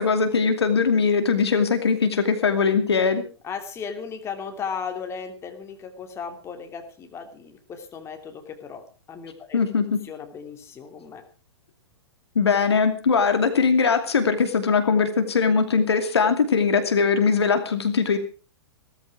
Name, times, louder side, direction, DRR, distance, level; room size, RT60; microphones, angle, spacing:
voice 1, 0.0-3.2 9.5-10.0 12.3-18.2, left 5 dB, 70° left, 8 dB, 2.5 m, -21 dB
voice 2, 3.4-9.6 10.0-11.2, left 6 dB, 20° left, 5 dB, 2.9 m, -36 dB
17.5 x 14.0 x 4.8 m, 0.35 s
figure-of-eight pair, 110°, 14 cm